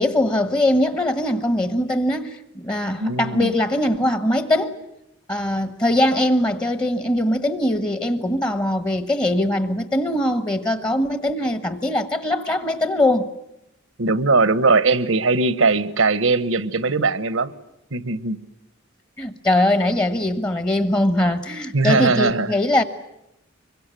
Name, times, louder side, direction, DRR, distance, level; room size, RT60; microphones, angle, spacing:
voice 1, 0.0-4.8 5.3-13.3 19.2-22.8, left 1 dB, 20° left, 1.3 m, -21 dB
voice 2, 3.0-3.5 14.0-17.5 17.9-18.4 21.7-22.6, right 3 dB, 80° right, 1.3 m, -20 dB
25.5 x 23.0 x 9.2 m
head